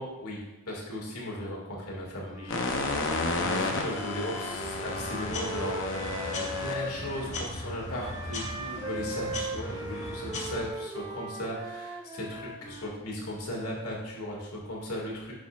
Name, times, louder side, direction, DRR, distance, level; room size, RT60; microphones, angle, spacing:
voice 1, 0.0-15.3, left 1 dB, 85° left, -3 dB, 2.2 m, -37 dB
Wind instrument woodwind instrument, 2.3-7.3 8.0-13.0, right 1 dB, 20° right, 0.5 m, -39 dB
sound 1, 2.5-8.6, left 3 dB, 60° left, 0.8 m, -33 dB
sound 2, 4.6-10.7, left 1 dB, 35° left, 1.3 m, -39 dB
8.5 x 6.1 x 2.5 m, 1.0 s
head